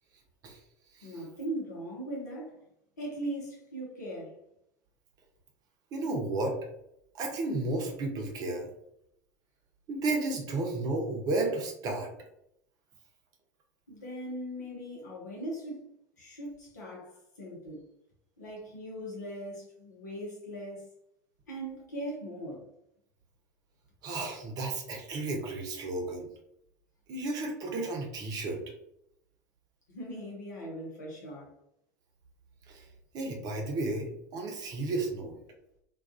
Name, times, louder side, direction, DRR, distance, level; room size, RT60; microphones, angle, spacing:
voice 1, 1.0-2.6 3.0-4.3 13.9-17.9 18.4-20.9 21.5-22.7 29.9-31.5, right 1 dB, 80° left, -4 dB, 0.7 m, -39 dB
voice 2, 5.9-6.6 7.1-8.7 9.9-12.1 24.0-26.3 27.1-28.6 32.7-32.9 33.1-35.3, right 2 dB, 45° right, 2 dB, 0.7 m, -33 dB
2.3 x 2.3 x 2.4 m, 0.77 s
figure-of-eight pair, 70°, 9 cm